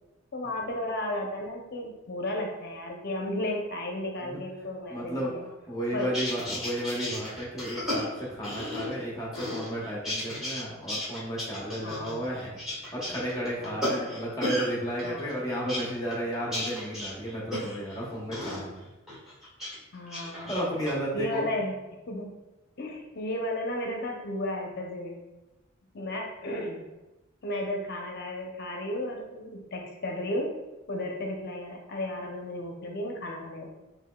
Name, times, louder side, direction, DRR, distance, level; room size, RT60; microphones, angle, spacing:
voice 1, 0.3-5.5 5.9-6.1 11.8-12.2 13.6-13.9 15.0-15.3 19.9-20.5 21.1-21.8 22.1-22.3 22.8-25.2 25.9-26.8 27.4-30.5 30.9-33.7, left 1 dB, 50° left, 1 dB, 0.6 m, -34 dB
voice 2, 4.9-5.3 5.7-12.6 12.9-18.9 20.5-21.4, equal, 20° left, -4 dB, 0.8 m, -33 dB
sound 1, 6.0-9.0 9.3-10.6 10.9-14.7 15.0-18.0 18.3-18.6 19.1-19.7 20.1-20.9, left 1 dB, ahead, 1.5 m, -34 dB
6.8 x 3.0 x 2.2 m, 1.0 s
head